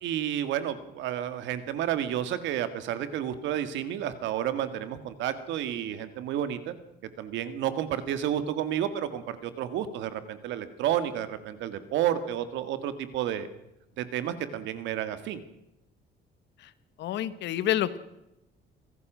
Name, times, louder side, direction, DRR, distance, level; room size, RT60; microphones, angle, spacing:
voice 1, 0.0-6.7 7.2-13.5 14.0-15.4, right 10 dB, 90° right, 12 dB, 2.0 m, -31 dB
voice 2, 17.0-18.0, left 11 dB, 75° left, 14 dB, 1.5 m, -28 dB
24.5 x 17.0 x 6.3 m, 0.89 s
cardioid pair, 140°, 18 cm